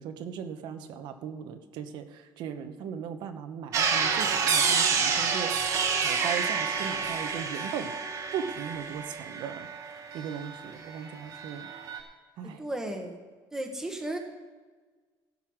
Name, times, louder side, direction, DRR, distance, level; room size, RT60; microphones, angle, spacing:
voice 1, 0.0-7.9 8.3-9.7 10.1-11.7 12.4-12.6, right 8 dB, 60° right, 8 dB, 1.1 m, -38 dB
sound 1, 3.7-10.9 11.2-12.0, right 6 dB, 40° right, 1.3 m, -28 dB
Wind instrument woodwind instrument, 4.0-8.3, right 1 dB, 35° left, 2.4 m, -44 dB
voice 2, 12.4-13.2 13.5-14.2, right 1 dB, 5° right, 3 dB, 1.3 m, -34 dB
15.5 x 5.5 x 6.3 m, 1.4 s
cardioid pair, 180°, 9 cm